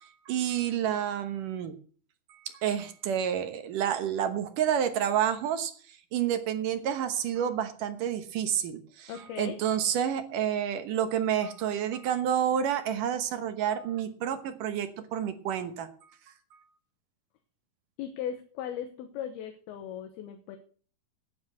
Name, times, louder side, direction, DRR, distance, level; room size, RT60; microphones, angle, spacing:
voice 1, 0.0-1.7 2.3-15.9 16.5-16.6, right 9 dB, 65° right, 9 dB, 2.4 m, -29 dB
voice 2, 9.1-9.6 18.0-20.6, left 9 dB, 75° left, 7 dB, 3.0 m, -38 dB
9.7 x 9.4 x 7.8 m, 0.43 s
omnidirectional pair, 4.6 m